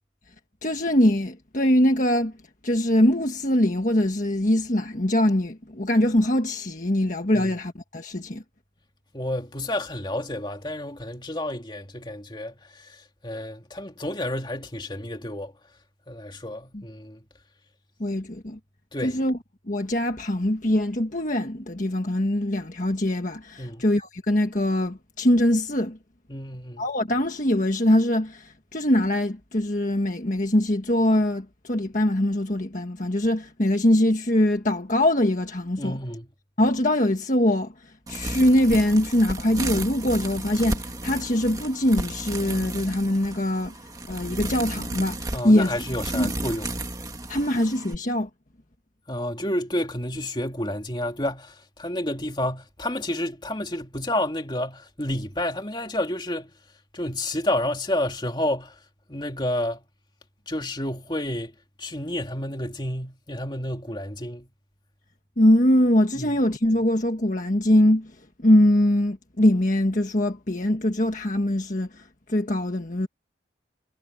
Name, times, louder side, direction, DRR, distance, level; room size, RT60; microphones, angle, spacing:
voice 1, 0.6-2.3 2.6-8.4 16.7-16.8 18.0-18.6 19.0-19.4 19.7-26.0 26.8-36.0 36.6-43.7 44.1-45.7 46.1-46.3 47.3-48.3 65.4-68.1 68.4-72.0 72.3-73.1, left 1 dB, 45° left, 1.6 m, -22 dB
voice 2, 9.1-15.5 16.1-17.2 18.9-19.2 23.6-23.9 26.3-26.9 35.8-36.3 45.3-46.7 49.1-56.5 56.9-58.8 59.1-59.8 60.5-64.5 66.1-66.4, left 1 dB, 25° left, 2.8 m, -30 dB
sound 1, 38.1-47.9, right 2 dB, 20° right, 1.9 m, -33 dB
head